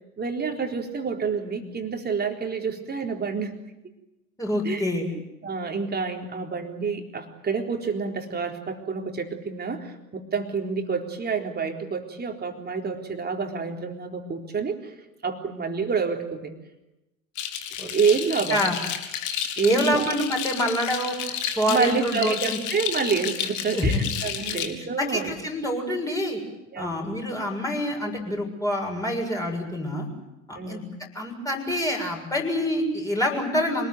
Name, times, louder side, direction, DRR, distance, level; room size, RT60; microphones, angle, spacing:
voice 1, 0.2-3.5 4.6-4.8 5.4-14.9 15.2-16.5 17.8-18.7 19.6-20.1 21.7-25.3 26.7-27.0 30.5-30.9, right 5 dB, 25° right, 4 dB, 3.9 m, -28 dB
voice 2, 4.4-5.1 17.8-17.9 18.5-18.8 19.6-22.6 23.7-24.0 24.5-24.7 25.0-26.4 26.8-30.1 30.5-30.8 31.2-33.9, left 1 dB, 10° left, 0 dB, 7.0 m, -26 dB
sound 1, 17.4-24.7, left 9 dB, 50° left, 2.9 m, -31 dB
26.0 x 20.0 x 9.3 m, 0.96 s
figure-of-eight pair, 70°, 39 cm